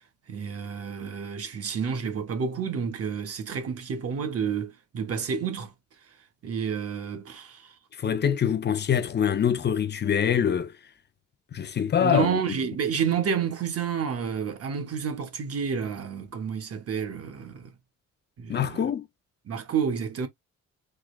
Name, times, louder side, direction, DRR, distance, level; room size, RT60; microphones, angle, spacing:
voice 1, 0.3-5.7 6.4-7.7 12.0-17.7 18.4-18.9 19.5-20.3, right 7 dB, 50° right, 1.1 m, -30 dB
voice 2, 8.0-10.7 11.5-12.4 18.5-19.1, left 8 dB, 35° left, 0.6 m, -24 dB
3.6 x 2.4 x 3.1 m
cardioid pair, 90°, 30 cm